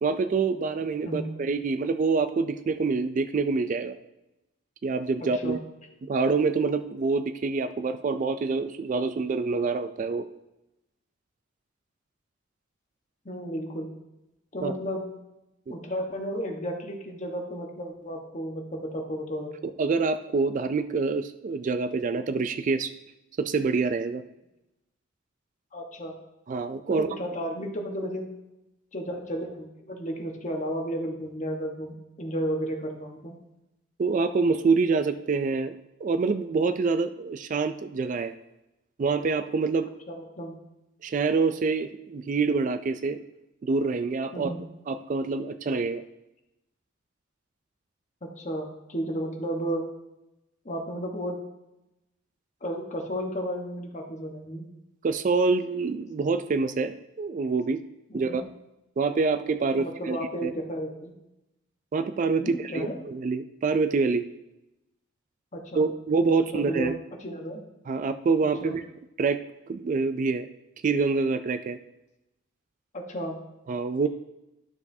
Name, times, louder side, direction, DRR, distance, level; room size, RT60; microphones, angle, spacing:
voice 1, 0.0-3.9 4.8-5.6 6.0-10.3 14.6-14.7 15.7-15.8 19.6-22.9 23.4-24.2 26.5-27.1 34.0-35.8 36.0-38.3 39.0-39.9 41.0-43.2 43.6-44.5 44.9-46.0 55.0-57.8 58.1-58.4 59.0-60.2 60.4-60.5 61.9-64.3 65.7-67.0 67.9-68.8 69.2-69.4 69.7-70.5 70.8-71.8 73.7-74.1, right 4 dB, 40° right, 11 dB, 0.3 m, -26 dB
voice 2, 5.2-5.6 13.2-13.9 14.5-15.0 15.7-19.5 25.7-26.1 26.9-28.3 28.9-33.4 40.1-40.5 44.3-44.6 48.2-49.8 50.6-51.4 52.6-54.6 58.1-58.4 59.8-61.1 62.4-62.9 65.5-65.9 66.5-66.9 67.2-67.6 68.6-68.8 72.9-73.4, equal, 35° left, 2 dB, 1.1 m, -33 dB
12.0 x 6.9 x 2.7 m, 0.93 s
head